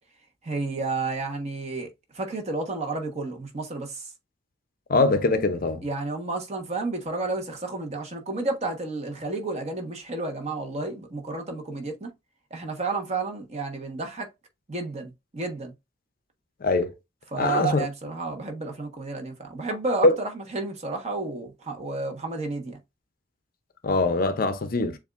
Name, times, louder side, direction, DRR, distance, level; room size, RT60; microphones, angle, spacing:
voice 1, 0.4-4.0 5.8-12.1 12.5-14.3 14.7-15.7 17.3-22.8, right 3 dB, 35° right, 1.2 m, -31 dB
voice 2, 4.9-5.8 16.6-16.9 17.4-17.8 20.0-20.2 23.8-25.0, left 2 dB, 50° left, 0.6 m, -22 dB
7.0 x 2.5 x 2.4 m
head